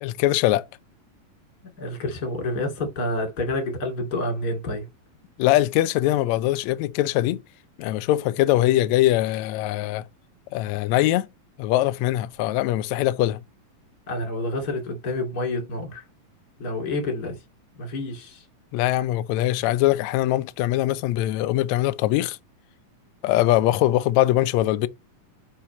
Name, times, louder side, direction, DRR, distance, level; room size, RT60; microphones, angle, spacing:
voice 1, 0.0-0.7 5.4-7.4 7.8-10.0 10.5-11.3 11.6-13.4 18.7-22.4 23.2-24.9, left 15 dB, 80° left, 1.6 m, -22 dB
voice 2, 1.8-4.9 14.1-16.0 16.6-17.4 17.8-18.5, left 2 dB, 30° left, 2.6 m, -28 dB
5.7 x 5.0 x 4.2 m
omnidirectional pair, 3.8 m